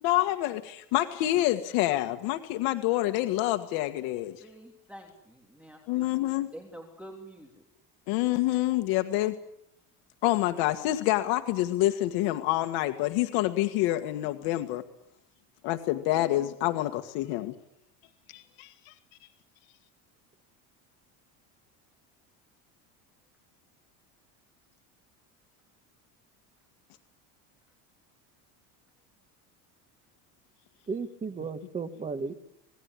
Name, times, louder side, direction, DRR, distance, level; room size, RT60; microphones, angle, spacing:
voice 1, 0.0-4.4 5.9-6.5 8.1-9.4 10.2-14.8 15.6-17.6 18.3-18.9, left 16 dB, 75° left, 7 dB, 1.8 m, -27 dB
voice 2, 4.4-6.2 6.5-7.6, right 1 dB, 5° right, 1 dB, 3.2 m, -47 dB
voice 3, 30.9-32.3, right 4 dB, 20° right, 8 dB, 1.9 m, -34 dB
27.0 x 19.5 x 9.9 m, 0.81 s
cardioid pair, 160°, 38 cm